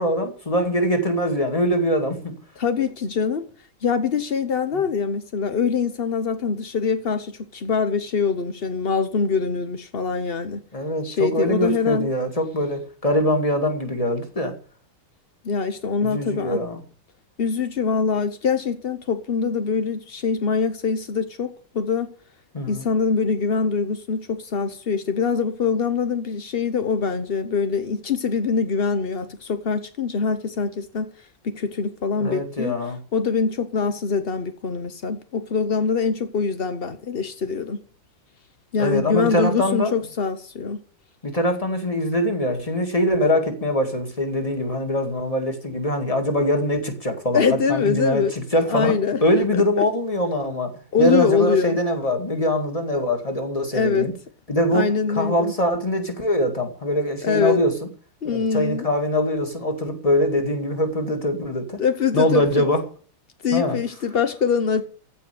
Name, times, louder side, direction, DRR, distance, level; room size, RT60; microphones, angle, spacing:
voice 1, 0.0-2.3 4.7-4.8 10.7-14.5 16.0-16.8 22.5-22.8 32.2-33.0 38.8-39.9 41.2-48.9 49.2-54.1 54.5-57.7 58.3-61.8 62.1-62.8 63.5-63.8, equal, 15° left, 2.1 m, -23 dB
voice 2, 2.6-3.4 3.8-10.6 11.0-12.1 15.4-16.6 17.4-22.1 22.7-31.1 31.4-32.8 33.1-37.8 38.7-40.8 47.3-48.3 48.7-49.2 49.5-49.9 50.9-51.8 53.7-54.1 54.7-55.5 57.2-57.6 58.2-58.9 61.8-62.6 63.4-64.8, left 5 dB, 60° left, 0.5 m, -23 dB
15.5 x 5.6 x 9.2 m
omnidirectional pair, 2.4 m